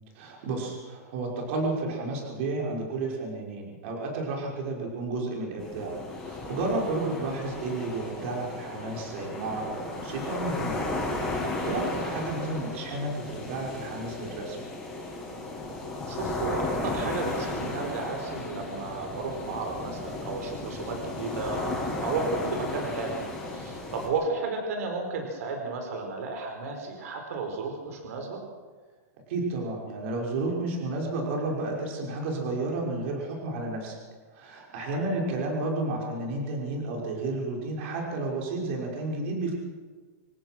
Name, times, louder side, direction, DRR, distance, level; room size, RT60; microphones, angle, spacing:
voice 1, 0.1-6.0 6.2-14.6 29.3-34.0 34.3-39.6, right 2 dB, 45° right, -1 dB, 6.0 m, -32 dB
sound 1, 5.6-24.1, left 2 dB, 5° left, 7.7 m, -35 dB
voice 2, 6.8-7.1 12.5-12.7 16.1-21.7 22.0-28.4 34.9-35.1, right 4 dB, 65° right, 3 dB, 5.0 m, -33 dB
27.5 x 16.0 x 6.3 m, 1.5 s
supercardioid pair, 165°, 9 cm